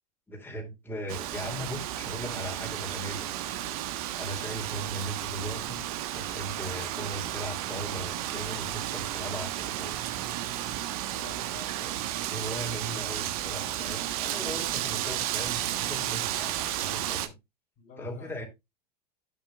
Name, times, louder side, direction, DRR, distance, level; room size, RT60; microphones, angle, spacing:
voice 1, 0.3-3.4 4.2-5.8 6.1-9.9 11.8-12.0 12.3-17.4 18.0-18.4, equal, 10° left, 2.6 m, -38 dB
Wind, 1.1-17.3, right 13 dB, 60° right, 1.2 m, -33 dB
voice 2, 11.1-11.8 17.8-18.5, left 5 dB, 45° left, 3.4 m, -48 dB
11.5 x 7.1 x 2.3 m
hypercardioid pair, 90°, 21 cm